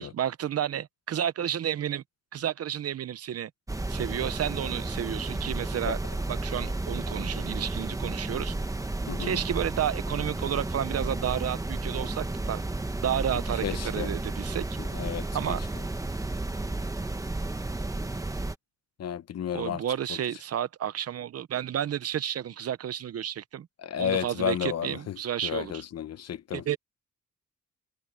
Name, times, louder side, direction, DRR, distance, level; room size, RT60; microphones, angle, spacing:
voice 1, 0.0-2.0 2.3-3.5 3.9-6.0 6.3-8.5 9.2-12.6 13.0-14.7 15.3-15.6 19.5-23.7 24.0-25.8 26.5-26.8, right 10 dB, 55° right, 0.7 m, -31 dB
sound 1, 3.7-18.5, right 2 dB, 10° right, 1.0 m, -32 dB
voice 2, 9.1-9.4 13.6-14.1 14.8-15.6 19.0-19.8 23.8-26.6, left 9 dB, 55° left, 0.9 m, -32 dB
wide cardioid pair, 165°, 30 cm